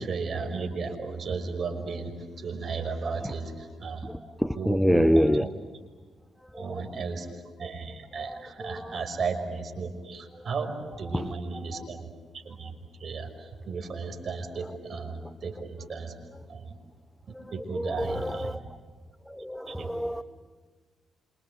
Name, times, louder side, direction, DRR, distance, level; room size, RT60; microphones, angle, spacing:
voice 1, 0.0-4.1 4.5-5.5 6.5-7.3 7.6-12.7 13.0-16.2 16.5-16.7 17.5-18.6 19.7-19.9, right 4 dB, 55° right, 6 dB, 5.6 m, -34 dB
voice 2, 4.0-5.5 6.5-6.8 8.3-9.0 10.3-10.5 11.1-11.3 11.7-11.8 14.6-14.7 17.3-18.6 19.3-20.2, equal, ahead, 14 dB, 0.8 m, -27 dB
28.0 x 26.0 x 8.2 m, 1.5 s
supercardioid pair, 50°, 0 cm